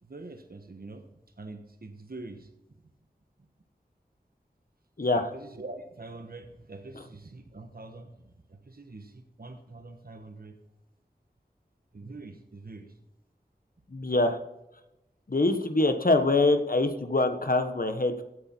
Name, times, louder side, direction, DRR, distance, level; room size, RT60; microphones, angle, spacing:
voice 1, 0.0-2.5 5.1-10.6 11.9-13.0, right 2 dB, 65° right, 6 dB, 1.2 m, -44 dB
voice 2, 5.0-5.3 13.9-14.4 15.3-18.2, left 2 dB, 60° left, 8 dB, 1.2 m, -24 dB
16.5 x 8.2 x 4.5 m, 0.90 s
wide cardioid pair, 50°, 17 cm